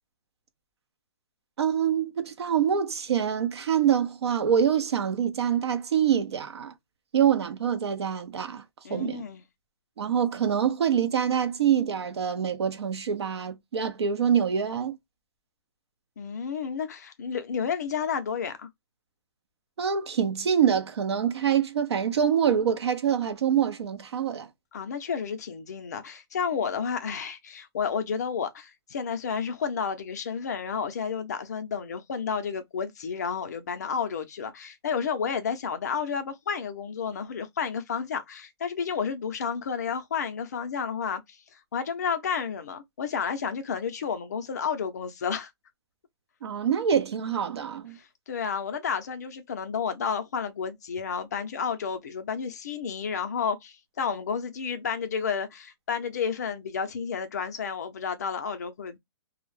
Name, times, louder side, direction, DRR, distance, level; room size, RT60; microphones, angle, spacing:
voice 1, 1.6-6.7 7.1-8.6 8.9-9.2 10.0-15.0 19.8-24.5 46.4-48.0, right 8 dB, 70° right, 0.6 m, -25 dB
voice 2, 8.8-9.4 16.2-18.7 24.7-41.4 41.7-45.5 47.9-59.0, left 6 dB, 40° left, 0.4 m, -31 dB
2.2 x 2.0 x 3.1 m
hypercardioid pair, 175°, 14 cm